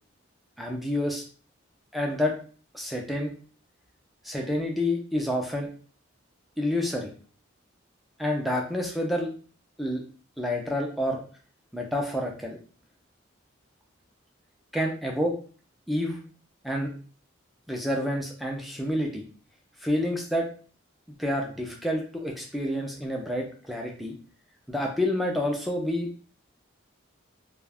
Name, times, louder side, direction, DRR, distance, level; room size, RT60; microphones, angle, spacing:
voice 1, 0.6-1.2 1.9-2.3 2.7-3.3 4.2-5.7 6.6-7.1 8.2-9.3 9.8-10.0 10.4-11.2 11.7-12.6 14.7-15.4 15.9-16.2 16.6-16.9 17.7-19.3 19.8-20.5 21.2-24.1 24.7-26.1, left 1 dB, ahead, 0 dB, 0.4 m, -28 dB
2.4 x 2.3 x 3.4 m, 0.41 s
head